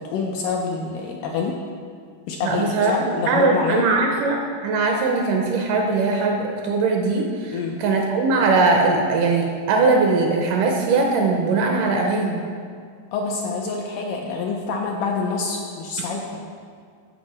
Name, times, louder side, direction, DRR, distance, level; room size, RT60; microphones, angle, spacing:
voice 1, 0.0-1.6 2.3-3.8 7.5-7.8 13.1-16.4, left 4 dB, 80° left, 1 dB, 1.9 m, -26 dB
voice 2, 2.4-4.4 4.6-12.4, right 3 dB, 80° right, 1 dB, 2.0 m, -20 dB
13.5 x 5.3 x 4.2 m, 2.1 s
omnidirectional pair, 4.2 m